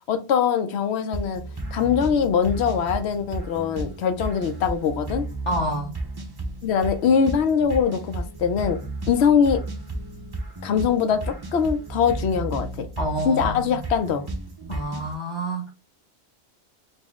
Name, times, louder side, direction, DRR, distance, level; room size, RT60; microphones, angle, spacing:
voice 1, 0.1-1.4 1.7-5.3 6.6-8.8 9.1-9.6 10.6-12.9 13.3-14.2, left 7 dB, 80° left, 0.9 m, -22 dB
sound 1, 1.1-15.1, right 2 dB, 25° right, 0.6 m, -33 dB
voice 2, 5.5-5.9 13.0-13.8 14.7-15.7, right 1 dB, 30° left, 0.8 m, -28 dB
4.2 x 2.0 x 3.4 m
omnidirectional pair, 1.1 m